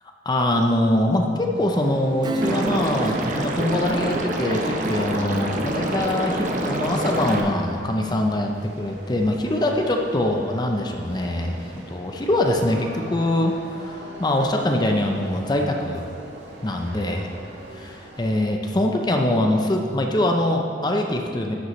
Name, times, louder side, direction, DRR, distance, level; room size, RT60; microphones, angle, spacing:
voice 1, 0.3-16.1 16.6-17.3 17.7-21.5, left 1 dB, 25° left, 2 dB, 0.6 m, -23 dB
sound 1, 1.5-18.5, right 1 dB, 85° right, 1.7 m, -43 dB
Acoustic guitar / Strum, 2.2-8.4 8.8-8.9, right 2 dB, 25° right, 0.3 m, -35 dB
Liquid, 2.4-7.4, right 1 dB, 45° right, 0.8 m, -26 dB
12.5 x 7.9 x 3.2 m, 2.3 s
head